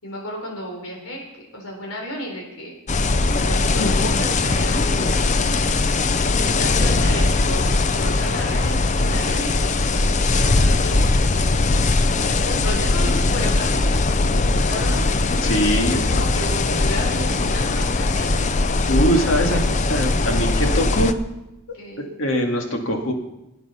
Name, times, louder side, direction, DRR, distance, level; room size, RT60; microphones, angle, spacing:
voice 1, 0.0-2.7 3.3-5.2 6.3-11.1 12.2-15.3 15.7-18.5 21.7-22.1, equal, 90° left, -1 dB, 4.2 m, -33 dB
sound 1, 2.9-21.1, left 3 dB, 35° left, 0.5 m, -20 dB
voice 2, 15.4-16.0 18.9-21.1 22.0-23.1, equal, 65° left, 3 dB, 2.2 m, -22 dB
16.0 x 9.3 x 5.7 m, 0.94 s
head